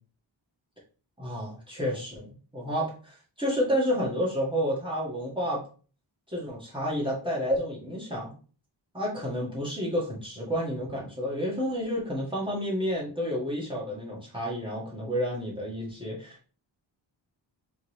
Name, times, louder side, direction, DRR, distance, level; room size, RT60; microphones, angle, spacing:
voice 1, 1.2-2.3 2.5-5.6 6.3-8.3 8.9-16.5, equal, 10° right, -6 dB, 1.4 m, -30 dB
3.8 x 3.6 x 3.1 m, 0.38 s
wide cardioid pair, 140°, 47 cm